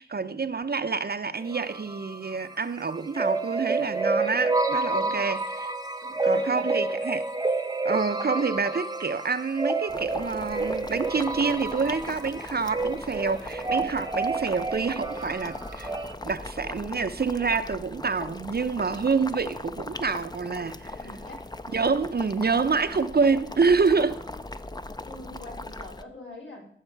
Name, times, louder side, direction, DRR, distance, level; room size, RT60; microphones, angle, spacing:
voice 1, 0.0-5.7 6.2-7.2 7.8-15.9 16.2-21.0 21.7-24.2, right 4 dB, 50° right, 0.6 m, -27 dB
sound 1, 1.4-2.5 2.9-16.1, right 3 dB, 20° right, 0.8 m, -29 dB
voice 2, 4.9-5.4 6.0-6.9 8.0-8.2 13.2-13.6 21.0-21.4 23.8-24.4 25.0-26.7, left 2 dB, 65° left, 4.0 m, -45 dB
Boiling, 9.9-26.0, left 2 dB, 20° left, 0.6 m, -39 dB
14.5 x 6.5 x 4.6 m
wide cardioid pair, 65°, 21 cm